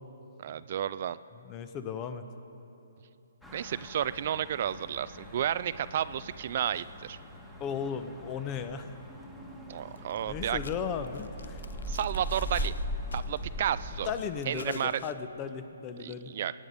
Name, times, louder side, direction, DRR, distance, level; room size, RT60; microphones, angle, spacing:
voice 1, 0.4-1.2 3.5-7.2 9.7-10.6 11.9-12.7 13.1-14.1 14.5-14.9 16.0-16.5, right 10 dB, 50° right, 15 dB, 0.3 m, -32 dB
voice 2, 1.4-2.2 7.6-9.0 10.3-11.6 14.0-16.3, left 7 dB, 25° left, 10 dB, 0.8 m, -36 dB
sound 1, 3.4-14.1, equal, 5° left, 1.6 m, -40 dB
sound 2, 10.0-10.2 10.5-12.8 13.1-13.4 14.0-15.2, left 5 dB, 70° left, 0.4 m, -49 dB
23.0 x 9.4 x 5.0 m, 2.9 s
hypercardioid pair, 140°, 0 cm